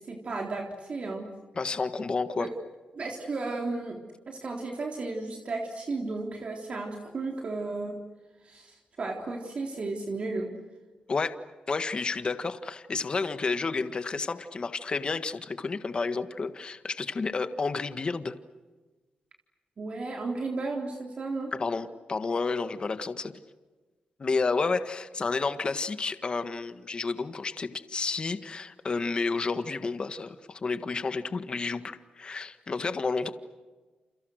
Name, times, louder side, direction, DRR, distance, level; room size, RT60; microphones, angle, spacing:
voice 1, 0.1-1.3 2.4-2.5 3.0-4.0 4.3-8.0 8.4-10.5 19.8-21.5, right 3 dB, 45° right, 1 dB, 3.7 m, -34 dB
voice 2, 1.5-2.5 11.1-11.3 11.7-18.3 21.5-23.3 24.2-33.3, left 4 dB, 35° left, 10 dB, 1.6 m, -30 dB
30.0 x 29.5 x 6.5 m, 1.3 s
wide cardioid pair, 120°, 3 cm